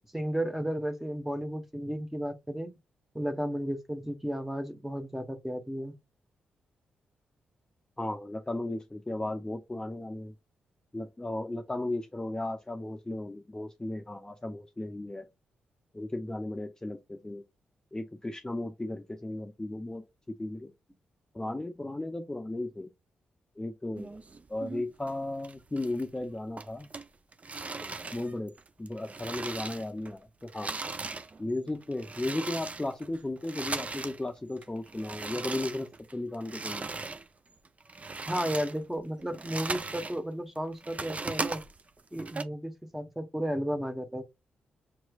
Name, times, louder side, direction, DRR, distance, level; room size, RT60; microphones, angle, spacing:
voice 1, 0.1-2.8 3.1-5.9 38.2-41.6 42.1-44.2, equal, 5° right, 1.1 m, -33 dB
voice 2, 8.0-10.3 10.9-15.3 15.9-17.4 17.9-20.7 21.3-22.9 23.6-24.2 24.5-26.9 27.8-28.5 28.8-30.7 31.4-36.9, left 2 dB, 15° left, 0.6 m, -35 dB
sound 1, 24.0-25.1 25.4-26.2 26.6-30.1 30.4-34.2 34.5-37.3 37.6-40.2 40.6-42.4, right 3 dB, 35° right, 0.5 m, -38 dB
5.9 x 3.1 x 2.4 m
supercardioid pair, 45°, 4 cm